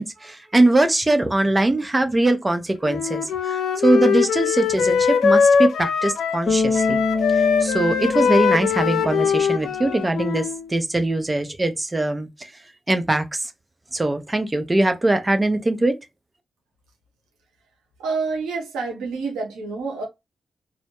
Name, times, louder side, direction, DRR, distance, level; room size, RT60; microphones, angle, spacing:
voice 1, 0.0-7.0 7.3-12.5 12.9-13.5 13.9-16.0, right 2 dB, 25° right, 0.6 m, -21 dB
Wind instrument woodwind instrument, 2.9-6.5 6.7-10.7, left 6 dB, 75° left, 0.3 m, -21 dB
Bass guitar, 6.5-9.6, left 3 dB, 40° left, 0.7 m, -26 dB
voice 2, 18.0-20.1, right 4 dB, 90° right, 0.7 m, -28 dB
2.1 x 2.1 x 2.9 m
supercardioid pair, 40°, 0 cm